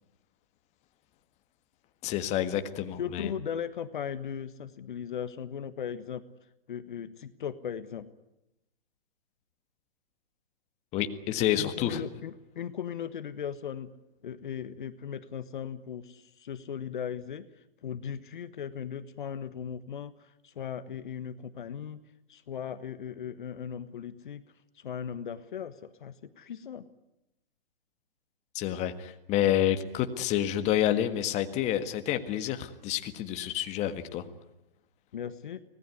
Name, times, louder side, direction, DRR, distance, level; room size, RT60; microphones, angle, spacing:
voice 1, 2.0-3.3 10.9-12.0 28.6-34.2, left 11 dB, 25° left, 9 dB, 1.7 m, -29 dB
voice 2, 3.0-6.2 6.7-8.1 11.6-13.9 14.2-17.5 17.8-22.0 22.3-24.4 24.7-26.9 35.1-35.6, left 8 dB, 55° left, 12 dB, 1.4 m, -38 dB
25.5 x 18.5 x 9.7 m, 0.91 s
figure-of-eight pair, 125°, 29 cm